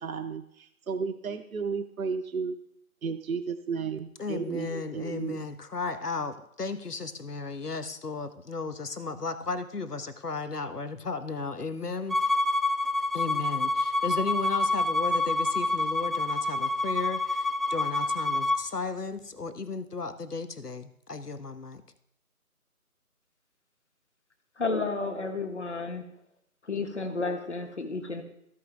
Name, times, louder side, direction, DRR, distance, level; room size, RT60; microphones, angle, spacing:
voice 1, 0.0-2.5 3.0-5.5, right 5 dB, 65° right, 8 dB, 0.7 m, -33 dB
voice 2, 4.2-12.2 13.1-21.8, left 4 dB, 90° left, 11 dB, 1.1 m, -35 dB
Bowed string instrument, 12.1-18.6, left 2 dB, ahead, 0.3 m, -27 dB
voice 3, 24.6-26.0 26.6-28.2, left 3 dB, 50° left, 6 dB, 1.4 m, -31 dB
15.0 x 5.1 x 3.4 m, 0.75 s
figure-of-eight pair, 160°, 45 cm